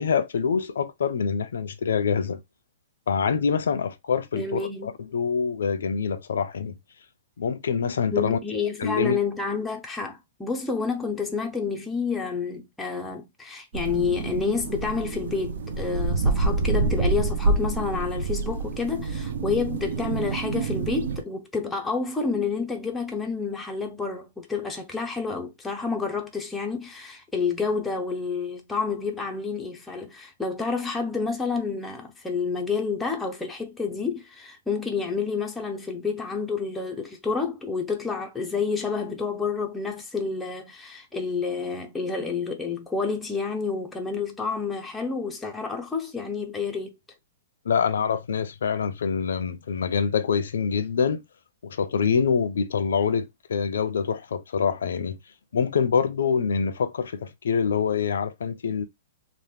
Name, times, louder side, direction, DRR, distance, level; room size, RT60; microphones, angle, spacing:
voice 1, 0.0-2.4 3.1-6.7 7.4-8.4 8.8-9.2 47.6-51.2 51.6-55.2 55.5-58.8, left 6 dB, 85° left, 0.5 m, -25 dB
voice 2, 4.3-4.9 8.1-47.0, left 5 dB, 5° left, 0.4 m, -29 dB
sound 1, 13.7-21.2, right 3 dB, 65° right, 0.5 m, -27 dB
2.9 x 2.1 x 3.4 m
hypercardioid pair, 165°, 0 cm